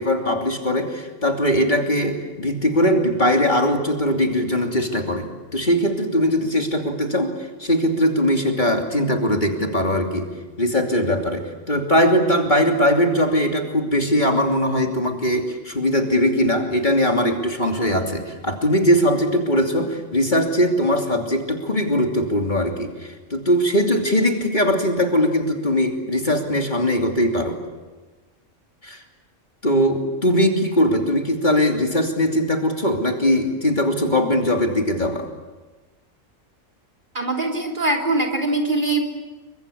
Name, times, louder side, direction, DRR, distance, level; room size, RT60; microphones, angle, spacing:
voice 1, 0.0-7.3 7.6-10.3 10.6-27.6 28.8-29.0 29.6-35.3, equal, 35° left, 3 dB, 3.0 m, -20 dB
voice 2, 37.1-39.1, right 2 dB, 40° right, 4 dB, 3.7 m, -22 dB
28.5 x 24.0 x 8.7 m, 1.2 s
omnidirectional pair, 1.3 m